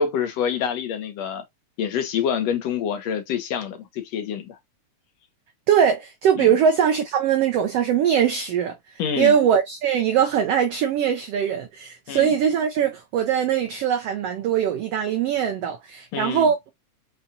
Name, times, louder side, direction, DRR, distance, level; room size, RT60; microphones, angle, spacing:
voice 1, 0.0-1.4 1.8-4.6 6.4-6.5 9.0-9.4 12.1-12.3 16.1-16.5, left 7 dB, 70° left, 1.8 m, -26 dB
voice 2, 5.7-16.6, right 8 dB, 80° right, 1.4 m, -21 dB
5.6 x 2.4 x 2.7 m
omnidirectional pair, 3.6 m